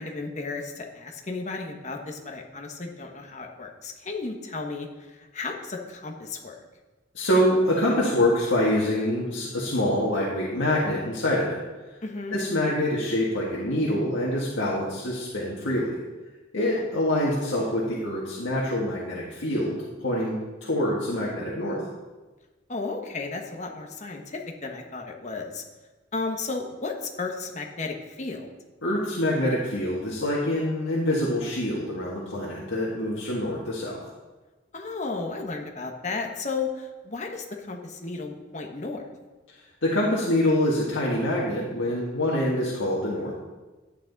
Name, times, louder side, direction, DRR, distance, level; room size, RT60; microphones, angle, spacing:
voice 1, 0.0-6.6 12.0-12.4 22.7-25.6 26.1-28.5 34.7-39.0, left 3 dB, 35° left, 2 dB, 1.2 m, -34 dB
voice 2, 7.1-11.6 12.3-16.0 16.5-21.8 28.8-34.0 39.8-43.3, left 1 dB, 85° left, -5 dB, 1.8 m, -25 dB
11.5 x 9.0 x 4.0 m, 1.2 s
head